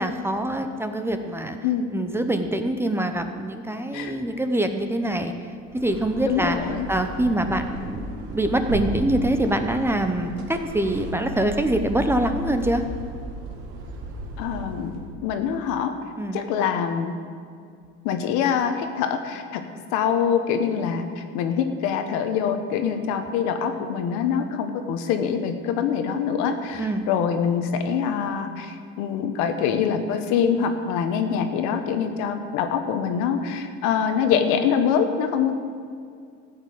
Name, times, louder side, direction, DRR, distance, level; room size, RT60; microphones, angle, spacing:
voice 1, 0.0-1.6 1.9-5.3 5.7-6.6 6.9-12.8 16.1-16.4 26.8-27.0, right 1 dB, 10° right, 6 dB, 0.7 m, -24 dB
sound 1, 5.6-15.2, right 1 dB, 70° right, 2.1 m, -35 dB
voice 2, 6.3-6.9 14.4-14.9 15.2-15.9 16.3-17.1 18.0-19.6 19.9-35.5, left 7 dB, 85° left, 7 dB, 1.3 m, -24 dB
14.5 x 5.9 x 8.6 m, 2.3 s
cardioid pair, 135°, 29 cm